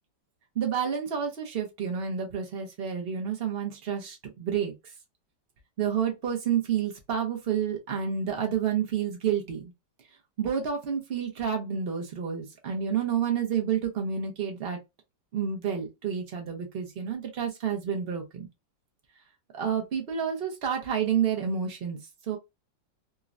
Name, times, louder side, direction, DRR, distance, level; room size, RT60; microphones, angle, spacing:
voice 1, 0.6-4.7 5.8-9.6 10.4-14.8 15.3-18.5 19.5-22.0 22.2-22.4, right 8 dB, 70° right, 0.5 m, -29 dB
3.7 x 2.1 x 2.4 m
omnidirectional pair, 2.0 m